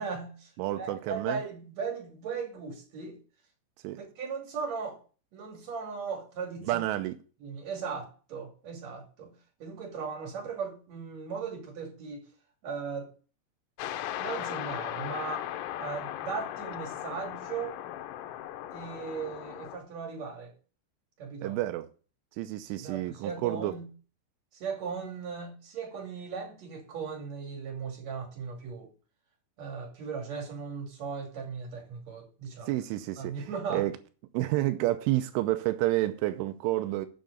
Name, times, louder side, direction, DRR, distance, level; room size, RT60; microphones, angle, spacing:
voice 1, 0.0-0.5 0.8-3.2 4.2-5.0 5.3-6.8 7.4-9.3 9.6-12.3 12.6-13.1 14.2-15.5 15.8-17.8 18.7-20.5 21.2-21.6 22.8-23.9 24.5-28.9 29.6-32.7 33.2-33.9, right 5 dB, 40° right, 3.2 m, -37 dB
voice 2, 0.6-1.4 3.8-4.0 6.7-7.2 21.4-21.9 22.4-23.7 32.7-33.3 33.7-34.0 34.3-37.1, right 16 dB, 85° right, 3.2 m, -29 dB
sound 1, 13.8-19.8, left 12 dB, 85° left, 3.1 m, -37 dB
8.2 x 6.5 x 8.2 m
omnidirectional pair, 5.5 m